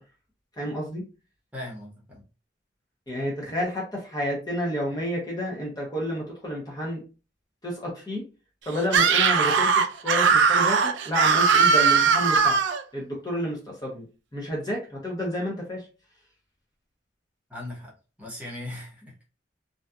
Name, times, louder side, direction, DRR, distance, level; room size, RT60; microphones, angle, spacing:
voice 1, 0.6-1.0 3.1-7.0 7.6-8.2 8.7-12.6 12.9-14.1 14.3-15.9, equal, 20° left, -3 dB, 0.6 m, -30 dB
voice 2, 1.5-2.2 17.5-17.9 18.2-19.0, left 1 dB, 10° right, -4 dB, 0.9 m, -38 dB
Screaming, 8.9-12.8, right 5 dB, 70° right, 0.4 m, -20 dB
2.6 x 2.3 x 2.2 m, 0.33 s
head